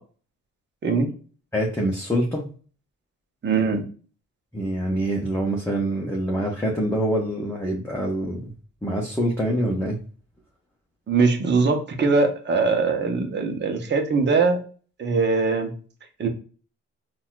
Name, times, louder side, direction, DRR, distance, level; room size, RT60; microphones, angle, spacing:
voice 1, 1.5-2.5 4.5-8.5 8.8-10.0, right 1 dB, 10° left, -3 dB, 0.8 m, -25 dB
voice 2, 3.4-3.8 11.1-14.6 15.0-15.7 16.2-16.3, right 4 dB, 35° right, 5 dB, 0.8 m, -21 dB
4.1 x 2.4 x 2.2 m, 0.39 s
cardioid pair, 90°, 30 cm